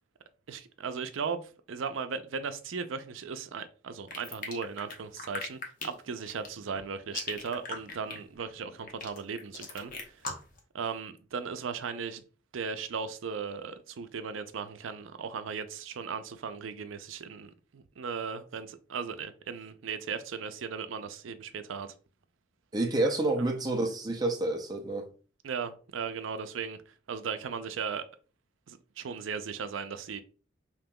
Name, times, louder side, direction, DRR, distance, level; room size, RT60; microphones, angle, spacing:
voice 1, 0.5-10.2 10.7-12.2 12.5-21.9 23.4-23.5 25.4-26.8 27.1-28.1 28.7-30.2, right 5 dB, 85° right, 0.5 m, -37 dB
sound 1, 4.1-10.6, left 4 dB, 45° left, 0.7 m, -39 dB
voice 2, 22.7-25.1, right 2 dB, 20° right, 0.6 m, -29 dB
5.2 x 2.9 x 2.2 m
head